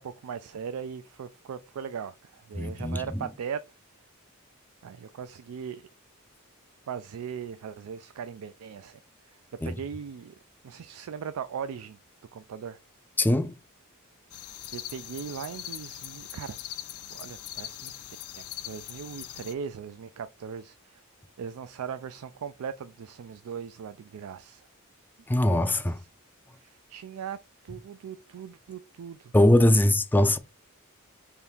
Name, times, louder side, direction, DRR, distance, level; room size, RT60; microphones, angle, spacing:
voice 1, 0.0-3.6 4.8-5.9 6.9-9.0 9.3-9.4 9.6-10.4 10.6-12.0 12.3-12.8 14.7-16.6 17.1-18.0 18.4-21.0 21.4-24.6 26.6-27.4 27.6-29.3, right 7 dB, 75° right, 0.4 m, -39 dB
voice 2, 2.6-3.2 9.6-9.8 13.2-13.5 25.3-26.0 29.3-30.4, left 1 dB, 10° left, 0.4 m, -22 dB
sound 1, 14.3-19.5, left 12 dB, 80° left, 0.5 m, -41 dB
3.6 x 3.4 x 4.3 m
head